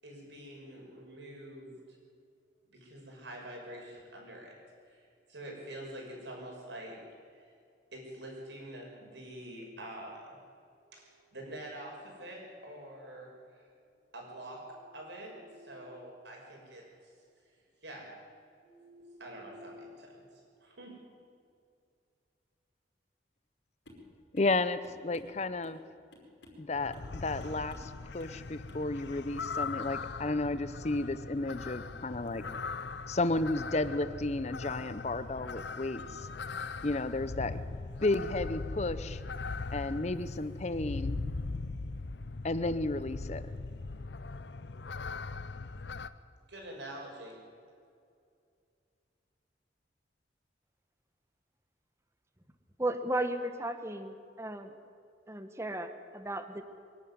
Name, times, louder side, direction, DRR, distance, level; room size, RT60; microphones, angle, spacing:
voice 1, 0.0-2.0 2.7-4.6 4.8-7.0 7.3-7.5 7.9-10.4 10.8-13.7 14.1-17.1 17.8-18.1 18.6-21.0 46.5-47.4, right 1 dB, 80° right, 0 dB, 5.9 m, -46 dB
sound 1, 23.9-24.1 24.4-24.6 24.8-25.8 26.1-26.7 26.9-27.1 27.4-27.9 28.2-28.4 28.7-28.9, left 2 dB, 90° left, 5.5 m, -54 dB
voice 2, 24.3-25.8 26.6-32.4 33.1-36.3 36.8-37.6 38.0-39.2 39.7-41.2 42.4-43.4, left 2 dB, 40° left, 13 dB, 0.7 m, -32 dB
sound 2, 26.7-46.1, left 3 dB, 70° left, 0.7 m, -40 dB
voice 3, 52.8-54.7 55.3-56.6, right 1 dB, 15° right, 8 dB, 1.1 m, -35 dB
23.5 x 11.5 x 9.6 m, 2.4 s
head